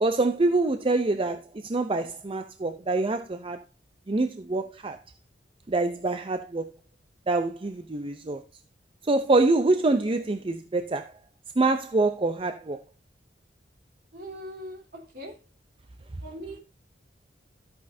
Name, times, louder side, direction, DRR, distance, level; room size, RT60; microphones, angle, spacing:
voice 1, 0.0-3.6 4.1-5.0 5.7-6.7 7.3-8.4 9.0-11.1 11.6-12.8, right 2 dB, 30° right, 0.6 m, -25 dB
voice 2, 14.1-15.4 16.2-16.6, equal, 60° right, 3.5 m, -41 dB
13.0 x 8.5 x 2.7 m
head